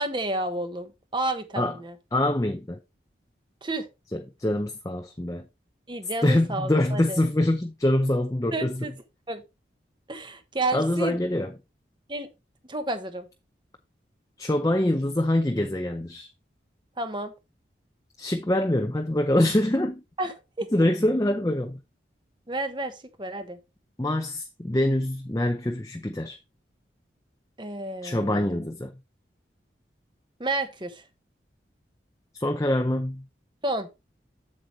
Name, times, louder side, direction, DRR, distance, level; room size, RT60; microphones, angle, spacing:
voice 1, 0.0-1.9 3.6-3.9 5.9-7.2 8.5-8.9 9.3-9.4 10.1-11.2 12.1-12.3 12.7-13.3 17.0-17.3 20.2-20.7 22.5-23.6 27.6-28.6 30.4-31.0 33.6-33.9, right 2 dB, 25° right, 1.1 m, -31 dB
voice 2, 2.1-2.8 4.1-5.4 6.2-8.9 10.7-11.5 14.4-16.3 18.2-20.0 20.7-21.8 24.0-26.4 28.0-28.9 32.3-33.2, left 1 dB, 20° left, 0.6 m, -25 dB
7.8 x 7.7 x 3.2 m
head